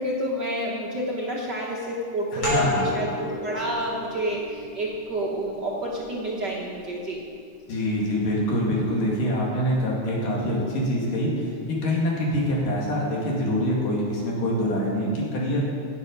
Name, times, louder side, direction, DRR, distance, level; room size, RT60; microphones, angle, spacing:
voice 1, 0.0-7.2, right 1 dB, 65° right, -4 dB, 1.1 m, -29 dB
voice 2, 2.3-2.9 7.7-15.6, equal, 80° left, -3 dB, 4.0 m, -25 dB
sound 1, 2.4-7.7, left 2 dB, 35° left, 4.8 m, -33 dB
17.0 x 8.1 x 5.4 m, 2.3 s
omnidirectional pair, 3.6 m